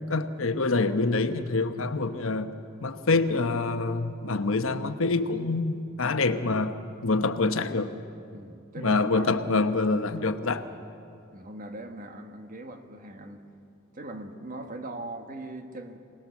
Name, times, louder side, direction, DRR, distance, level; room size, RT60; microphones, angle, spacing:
voice 1, 0.0-2.5 2.8-6.8 7.0-7.9 8.8-10.6, left 3 dB, 80° left, 9 dB, 1.0 m, -26 dB
voice 2, 8.3-9.5 10.7-10.8 11.3-13.4 13.9-16.0, right 2 dB, 40° right, 6 dB, 1.5 m, -40 dB
24.5 x 19.0 x 7.2 m, 2.5 s
head